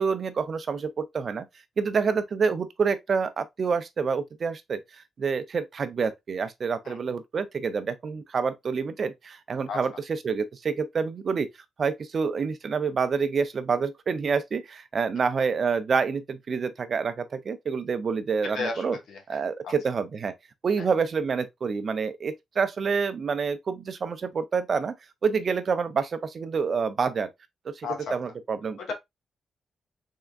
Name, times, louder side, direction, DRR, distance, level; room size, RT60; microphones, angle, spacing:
voice 1, 0.0-1.5 1.8-11.5 11.8-19.0 19.3-20.3 20.6-24.9 25.2-27.3 27.7-28.9, right 5 dB, 40° right, 0.4 m, -27 dB
voice 2, 18.5-19.7 27.8-28.2 28.8-28.9, left 4 dB, 90° left, 1.1 m, -34 dB
3.6 x 3.4 x 2.3 m
wide cardioid pair, 160°, 0 cm